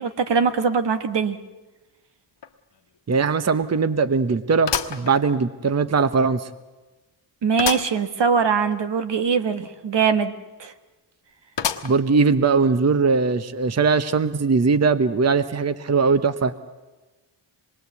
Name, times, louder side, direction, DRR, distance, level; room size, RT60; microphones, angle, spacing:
voice 1, 0.0-1.4 7.4-10.3 10.6-10.7, right 6 dB, 70° right, 9 dB, 1.4 m, -22 dB
sound 1, 2.4-2.5 3.0-3.1 4.7-5.8 6.3-6.4 7.6-8.0 8.4-8.5 8.7-8.8 11.6-12.2 12.8-12.9 13.9-14.0, left 7 dB, 75° left, 1.4 m, -28 dB
voice 2, 3.1-6.5 11.8-16.5, right 4 dB, 35° right, 12 dB, 0.8 m, -20 dB
26.0 x 21.5 x 8.2 m, 1.2 s
wide cardioid pair, 105°, 43 cm